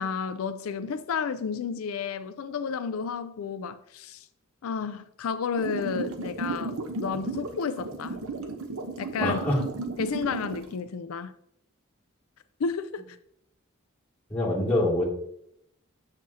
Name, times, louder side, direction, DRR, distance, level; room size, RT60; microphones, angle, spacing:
voice 1, 0.0-4.3 4.6-8.2 9.0-9.4 10.0-11.3 12.6-13.2, left 5 dB, 85° left, 0.4 m, -31 dB
sound 1, 5.6-10.7, right 3 dB, 85° right, 0.9 m, -34 dB
voice 2, 9.2-9.6 14.3-15.0, left 1 dB, 10° left, 2.7 m, -25 dB
7.3 x 6.5 x 2.8 m
head